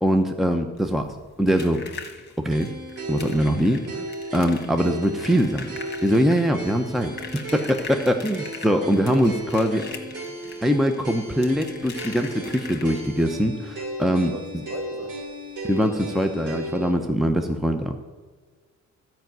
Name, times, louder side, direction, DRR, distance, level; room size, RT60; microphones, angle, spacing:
voice 1, 0.0-1.8 2.4-2.7 3.1-3.8 4.3-5.7 6.0-9.8 10.6-14.3 15.6-18.0, equal, ahead, 6 dB, 0.7 m, -22 dB
sound 1, 0.8-13.3 14.7-14.8 15.1-15.3 15.7-15.8, left 4 dB, 35° left, 1.9 m, -41 dB
sound 2, 2.5-16.9, right 1 dB, 80° right, 3.2 m, -36 dB
voice 2, 8.8-9.2 9.5-10.0 14.2-15.2, right 1 dB, 50° right, 2 dB, 2.7 m, -36 dB
12.5 x 5.8 x 9.1 m, 1.4 s
cardioid pair, 95°, 31 cm